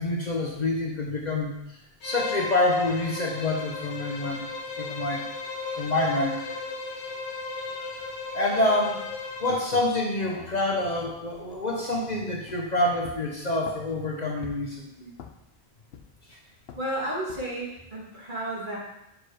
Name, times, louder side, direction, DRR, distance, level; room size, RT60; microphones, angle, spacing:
voice 1, 0.0-1.8 2.0-4.5 4.8-5.3 5.8-6.4 8.3-9.1 9.4-15.1 16.3-16.4, left 2 dB, 45° left, 0 dB, 0.9 m, -27 dB
Bowed string instrument, 2.0-9.7, left 3 dB, 85° left, 1.1 m, -35 dB
sound 1, 9.1-9.2 9.4-12.0 12.4-12.7 13.0-14.0 14.4-14.8 15.1-15.6 15.9-16.3 16.7-16.9 17.3-17.6, left 7 dB, 70° left, 0.9 m, -44 dB
voice 2, 16.8-18.8, right 1 dB, 50° right, -5 dB, 2.1 m, -32 dB
6.0 x 4.9 x 4.9 m, 0.85 s
omnidirectional pair, 1.1 m